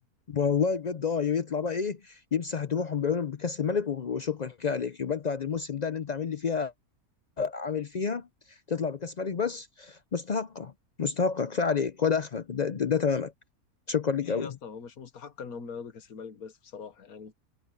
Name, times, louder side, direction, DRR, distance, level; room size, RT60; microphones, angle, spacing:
voice 1, 0.3-6.7 7.4-8.3 8.7-10.7 11.0-13.3 13.9-14.5, left 6 dB, 60° left, 0.4 m, -29 dB
voice 2, 14.2-17.3, left 6 dB, 75° left, 1.7 m, -42 dB
omnidirectional pair, 1.5 m